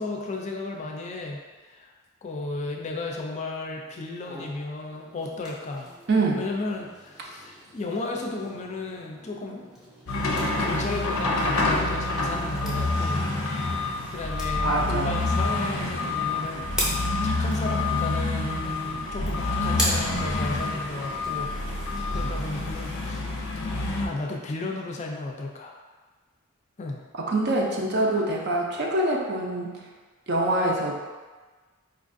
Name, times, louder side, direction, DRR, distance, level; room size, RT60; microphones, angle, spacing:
voice 1, 0.0-1.9 2.2-5.9 6.4-9.6 10.6-13.3 13.7-16.6 17.2-23.2 24.0-25.8 26.8-27.0, left 2 dB, 35° left, 0 dB, 0.4 m, -34 dB
sound 1, 4.2-23.0, equal, 5° right, 0.6 m, -39 dB
voice 2, 6.1-6.4 14.6-15.1 27.3-29.8 30.3-30.9, right 2 dB, 50° right, -1 dB, 0.5 m, -25 dB
sound 2, 10.1-24.1, left 2 dB, 85° left, 0.5 m, -27 dB
4.4 x 2.4 x 2.5 m, 1.3 s
head